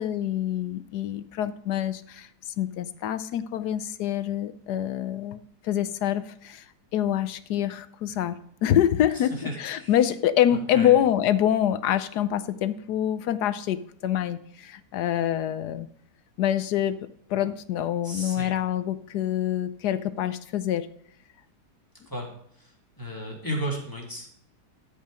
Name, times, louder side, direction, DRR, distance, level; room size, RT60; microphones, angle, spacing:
voice 1, 0.0-2.3 2.6-6.6 6.9-15.9 16.4-20.9, left 11 dB, 75° left, 14 dB, 1.2 m, -26 dB
voice 2, 9.1-9.9 10.5-10.9 18.0-18.5 22.1-22.3 22.6-22.7 23.0-24.3, equal, 10° left, -1 dB, 2.9 m, -34 dB
13.0 x 5.6 x 4.9 m, 0.67 s
omnidirectional pair, 1.8 m